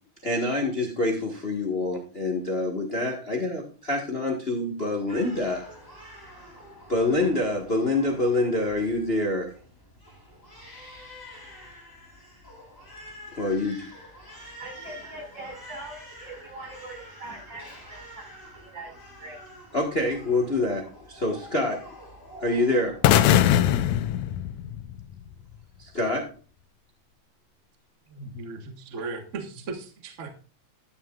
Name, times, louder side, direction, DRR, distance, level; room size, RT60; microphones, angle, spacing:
voice 1, 0.2-5.6 6.9-9.5 13.4-13.8 19.7-21.8 22.4-23.0 25.8-26.2, left 2 dB, 60° left, 1 dB, 0.6 m, -26 dB
Crying sobbing, 5.1-23.9, equal, 5° left, 3.8 m, -47 dB
voice 2, 14.6-18.2 18.5-18.9 19.2-19.4, right 2 dB, 30° right, -1 dB, 5.7 m, -42 dB
sound 1, 23.0-25.1, left 11 dB, 80° left, 1.6 m, -21 dB
voice 3, 28.1-30.3, right 3 dB, 80° right, 5 dB, 0.6 m, -37 dB
11.0 x 10.5 x 2.4 m, 0.38 s
omnidirectional pair, 3.8 m